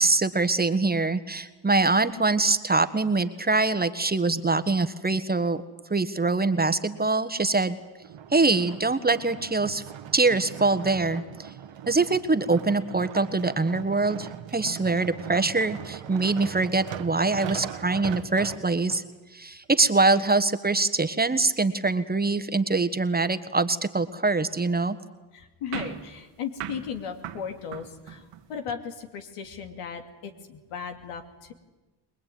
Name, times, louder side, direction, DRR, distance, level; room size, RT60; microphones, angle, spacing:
voice 1, 0.0-5.6 5.9-7.8 8.3-9.8 10.1-11.5 11.9-19.0 19.3-25.0, right 3 dB, 20° right, 10 dB, 1.4 m, -24 dB
sound 1, 8.0-19.0 19.7-19.8, right 9 dB, 60° right, 1.5 m, -39 dB
voice 2, 25.3-31.5, left 7 dB, 90° left, 5 dB, 2.7 m, -36 dB
sound 2, 25.7-28.6, right 9 dB, 90° right, 2.1 m, -39 dB
23.0 x 20.5 x 9.4 m, 1.2 s
cardioid pair, 75°, 50 cm